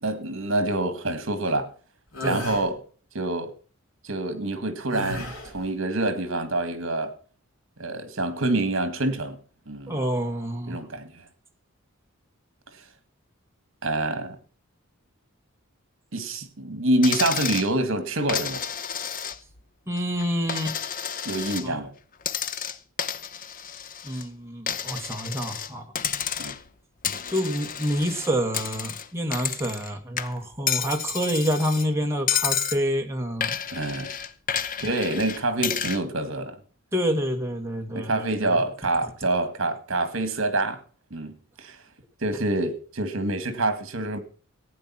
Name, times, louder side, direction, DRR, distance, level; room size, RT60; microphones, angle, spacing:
voice 1, 0.0-1.7 2.2-2.8 3.1-3.5 4.0-7.1 7.8-9.4 9.7-10.0 10.7-11.2 12.7-12.8 13.8-14.4 16.1-18.6 21.3-21.9 26.4-26.5 33.7-34.1 34.8-36.6 37.9-40.8 41.1-41.3 41.6-41.8 42.2-44.2, right 2 dB, 65° right, 1.9 m, -26 dB
sound 1, 2.1-2.7 4.9-5.6, left 1 dB, 70° left, 5.5 m, -33 dB
voice 2, 9.9-10.8 19.9-20.8 21.6-21.8 24.0-25.8 27.3-33.6 36.9-38.3, equal, 15° right, 1.6 m, -27 dB
Coin (dropping), 17.0-17.7 18.3-19.6 20.0-21.7 22.2-24.3 24.7-25.7 26.0-26.7 27.0-29.9 30.2-31.9 32.3-32.8 33.4-36.0, left 8 dB, 40° left, 0.7 m, -30 dB
15.5 x 9.2 x 5.9 m
head